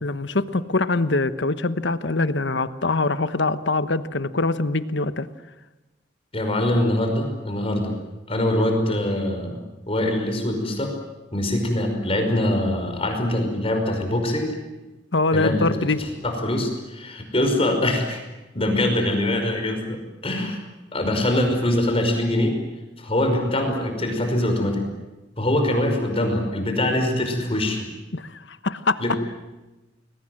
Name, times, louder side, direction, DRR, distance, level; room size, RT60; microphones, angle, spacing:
voice 1, 0.0-5.3 15.1-16.0 28.1-29.0, left 3 dB, 70° left, 12 dB, 1.2 m, -23 dB
voice 2, 6.3-8.0 8.3-9.6 9.9-10.9 11.3-14.5 15.3-15.7 16.0-18.2 18.5-20.6 20.9-22.5 23.0-24.8 25.4-27.9 29.0-29.1, left 1 dB, 30° left, 4 dB, 5.3 m, -23 dB
29.5 x 21.5 x 7.8 m, 1.1 s
head